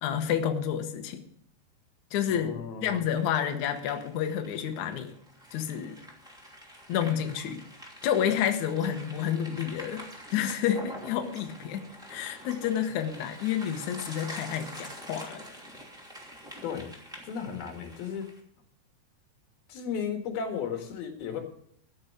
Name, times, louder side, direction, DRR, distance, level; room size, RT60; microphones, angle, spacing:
voice 1, 0.0-1.2 2.1-2.5 2.8-5.1 5.5-6.0 6.9-7.6 8.0-10.0 10.3-15.4, left 9 dB, 85° left, 6 dB, 1.6 m, -29 dB
voice 2, 2.3-3.0 16.6-16.9 17.2-18.3 19.7-21.4, left 7 dB, 60° left, 4 dB, 3.3 m, -35 dB
sound 1, 3.0-18.4, equal, ahead, 1.6 m, -46 dB
13.5 x 6.4 x 8.5 m, 0.66 s
omnidirectional pair, 5.2 m